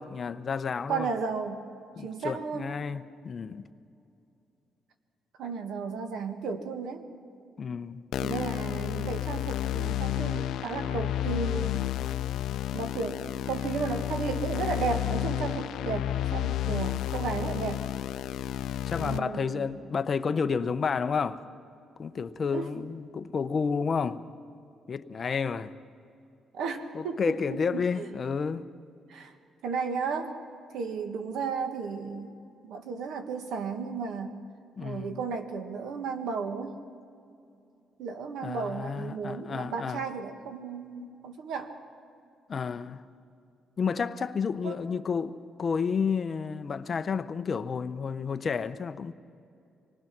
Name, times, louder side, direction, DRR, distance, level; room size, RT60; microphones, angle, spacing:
voice 1, 0.0-1.1 2.0-3.6 7.6-8.0 16.7-16.8 18.9-21.4 22.0-24.2 24.9-25.7 26.9-28.7 34.8-35.2 38.4-40.0 42.5-43.0 43.8-49.1, left 5 dB, 40° left, 0.7 m, -31 dB
voice 2, 0.9-1.6 2.0-2.7 5.4-7.0 8.2-11.9 12.7-17.8 19.0-19.8 22.5-22.7 26.5-28.1 29.1-29.3 29.6-30.3 30.7-32.4 32.6-34.3 34.8-36.8 38.0-41.7 44.6-44.8, right 5 dB, 90° right, 1.7 m, -34 dB
sound 1, 8.1-19.2, left 13 dB, 85° left, 0.5 m, -31 dB
26.0 x 19.0 x 6.0 m
cardioid pair, 125°, 0 cm